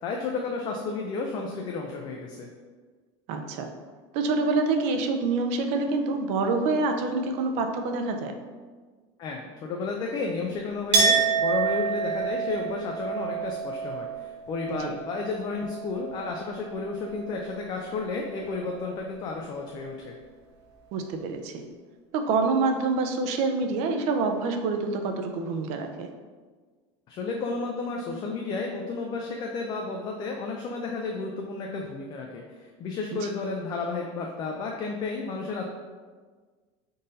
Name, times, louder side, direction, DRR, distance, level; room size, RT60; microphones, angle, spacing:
voice 1, 0.0-2.5 9.2-20.1 27.1-35.6, left 4 dB, 30° left, 1 dB, 0.3 m, -32 dB
voice 2, 3.3-3.7 4.1-8.3 14.7-14.9 20.9-21.6 22.1-26.1 33.1-33.2, right 3 dB, 50° right, 5 dB, 0.5 m, -26 dB
Chink clink, 10.9-16.4 16.7-17.6, right 5 dB, 75° right, 1.0 m, -28 dB
3.8 x 2.6 x 3.9 m, 1.5 s
supercardioid pair, 150°, 14 cm